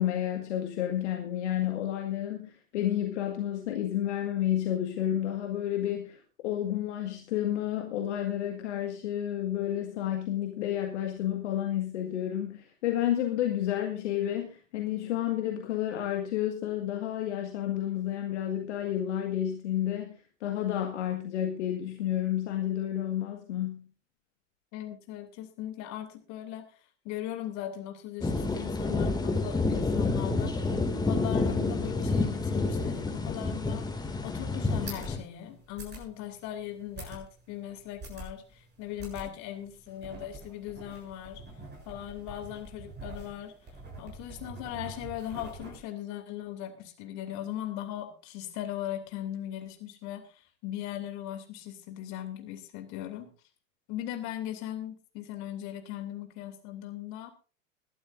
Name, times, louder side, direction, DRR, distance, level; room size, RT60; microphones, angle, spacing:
voice 1, 0.0-23.9, left 11 dB, 60° left, 3 dB, 1.9 m, -31 dB
voice 2, 24.7-26.7 27.0-30.7 30.9-33.9 34.2-41.4 41.8-43.5 44.0-53.3 53.9-57.3, left 12 dB, 45° left, 7 dB, 2.8 m, -39 dB
sound 1, 28.2-35.2, left 3 dB, 10° left, 2.3 m, -29 dB
sound 2, 34.5-45.8, right 2 dB, 25° right, 7.3 m, -46 dB
22.0 x 11.5 x 2.6 m, 0.36 s
figure-of-eight pair, 85°, 39 cm